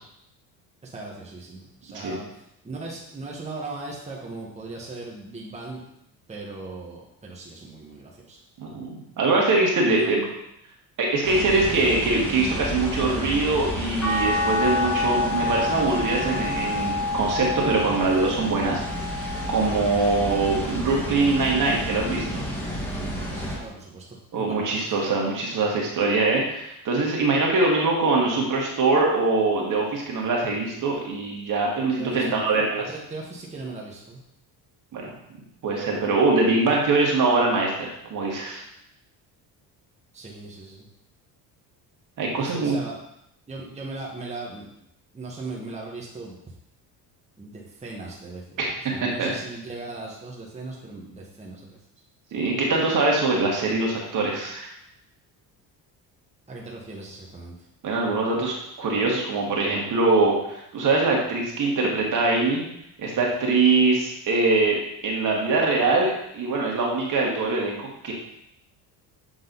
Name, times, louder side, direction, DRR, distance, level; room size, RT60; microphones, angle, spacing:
voice 1, 0.8-5.8 6.3-8.4 9.8-10.1 11.8-11.9 23.3-25.0 32.0-34.2 40.1-40.8 42.3-43.0 43.5-44.7 45.1-46.4 47.4-48.4 48.8-51.8 56.5-57.7, right 3 dB, 15° right, -3 dB, 1.3 m, -38 dB
voice 2, 8.6-10.2 11.0-22.4 24.3-32.8 34.9-35.1 35.6-38.6 42.2-42.8 48.6-48.7 49.0-49.3 52.3-54.7 57.8-62.6 63.0-64.8 65.0-68.1, right 3 dB, 50° right, -2 dB, 1.8 m, -23 dB
sound 1, 11.2-23.6, equal, 5° left, 1.8 m, -32 dB
sound 2, 14.0-20.3 20.9-22.2 23.6-23.7, left 2 dB, 35° left, 2.0 m, -29 dB
7.4 x 3.9 x 4.0 m, 0.78 s
cardioid pair, 100°, 41 cm